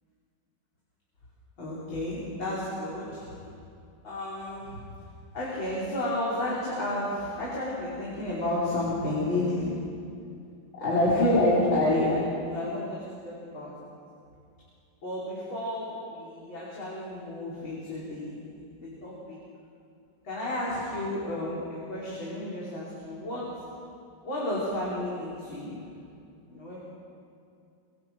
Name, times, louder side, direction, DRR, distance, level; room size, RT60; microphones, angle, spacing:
voice 1, 1.6-3.5 4.0-4.8 5.3-9.8 10.7-13.7 15.0-18.3 18.8-19.4 20.2-23.5 24.2-25.8 26.5-26.8, left 1 dB, 90° left, -8 dB, 6.1 m, -30 dB
28.5 x 27.0 x 6.2 m, 2.5 s
omnidirectional pair, 2.1 m